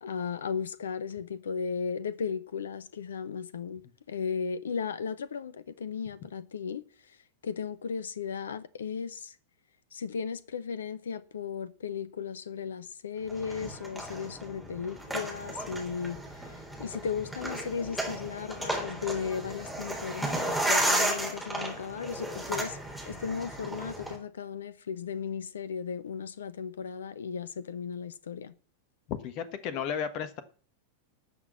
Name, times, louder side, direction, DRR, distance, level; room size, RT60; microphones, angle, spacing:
voice 1, 0.0-7.2 7.4-9.3 9.9-22.8 23.1-28.5, left 6 dB, 65° left, 0.8 m, -36 dB
sound 1, 13.3-24.2, right 1 dB, ahead, 3.6 m, -33 dB
voice 2, 29.1-30.4, left 8 dB, 40° left, 1.2 m, -34 dB
12.0 x 6.1 x 7.2 m
figure-of-eight pair, 90°, 0 cm